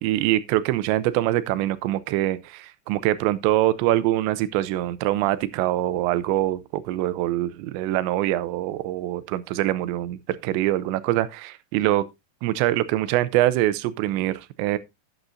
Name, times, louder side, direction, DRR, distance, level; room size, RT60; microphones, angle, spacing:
voice 1, 0.0-12.0 12.4-14.8, right 14 dB, 90° right, 3.0 m, -24 dB
12.0 x 9.3 x 2.6 m
omnidirectional pair, 5.0 m